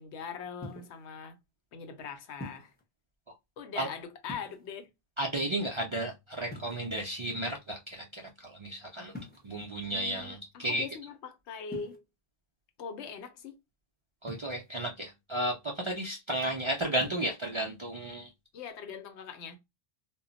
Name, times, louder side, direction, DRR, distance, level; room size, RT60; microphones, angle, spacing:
voice 1, 0.0-1.4 1.7-2.7 3.6-4.9 9.8-12.0 12.8-13.6 16.3-16.5 18.5-19.6, left 6 dB, 90° left, 0.9 m, -42 dB
sound 1, 0.6-1.0 2.4-2.8 4.2-4.9 6.5-7.2 9.1-9.6 11.7-12.0 14.3-14.8 16.9-17.3, left 1 dB, 10° left, 0.5 m, -45 dB
voice 2, 5.2-9.1 9.4-10.9 14.2-18.3, right 1 dB, 50° right, 0.3 m, -33 dB
2.2 x 2.0 x 3.8 m
omnidirectional pair, 1.1 m